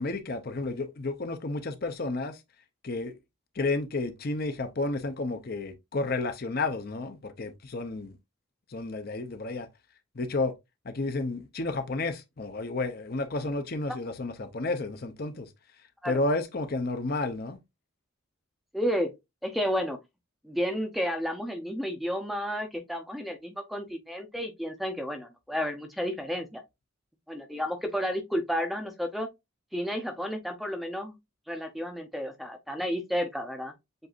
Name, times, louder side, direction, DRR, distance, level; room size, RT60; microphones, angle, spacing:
voice 1, 0.0-2.4 2.8-3.2 3.5-8.2 8.7-9.7 10.1-10.5 10.8-15.5 16.0-17.6, left 2 dB, 45° left, 0.6 m, -31 dB
voice 2, 18.7-19.1 19.4-20.0 20.4-26.6 27.3-29.3 29.7-31.1 31.5-33.7, equal, ahead, 0.6 m, -31 dB
7.8 x 2.6 x 2.4 m
head